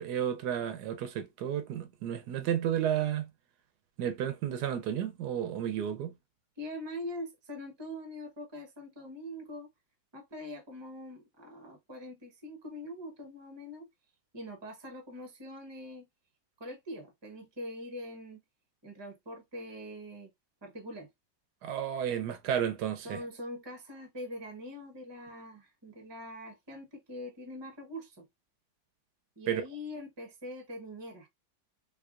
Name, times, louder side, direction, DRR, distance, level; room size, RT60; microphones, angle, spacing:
voice 1, 0.0-3.3 4.0-6.1 21.6-23.2 29.5-29.6, right 9 dB, 80° right, 1.1 m, -32 dB
voice 2, 6.6-9.7 10.1-13.9 14.3-16.1 16.6-18.4 18.8-20.3 20.6-21.1 23.0-28.3 29.4-31.3, left 1 dB, 20° right, 0.8 m, -43 dB
3.5 x 3.3 x 2.4 m
omnidirectional pair, 1.8 m